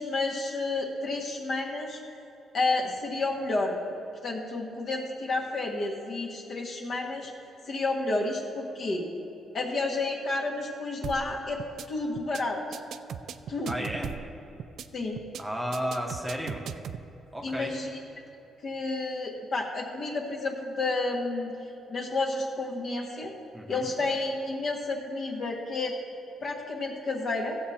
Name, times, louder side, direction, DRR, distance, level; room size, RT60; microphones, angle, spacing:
voice 1, 0.0-2.0 2.5-3.8 4.2-7.3 7.7-9.0 9.5-11.6 11.9-12.8 13.5-13.9 14.9-15.2 17.4-17.9 18.6-21.5 21.9-23.3 23.7-26.0 26.4-27.6, left 2 dB, 50° left, -1 dB, 1.6 m, -30 dB
sound 1, 11.0-11.3 11.6-11.9 12.2-12.4 12.7-14.3 14.6-14.9 15.2-15.4 15.7-17.0, right 8 dB, 70° right, 0.3 m, -37 dB
voice 2, 13.6-14.2 15.4-16.7 17.3-17.8 23.5-23.9, equal, 5° right, 0 dB, 1.0 m, -33 dB
15.5 x 6.6 x 4.3 m, 2.9 s
cardioid pair, 115°, 0 cm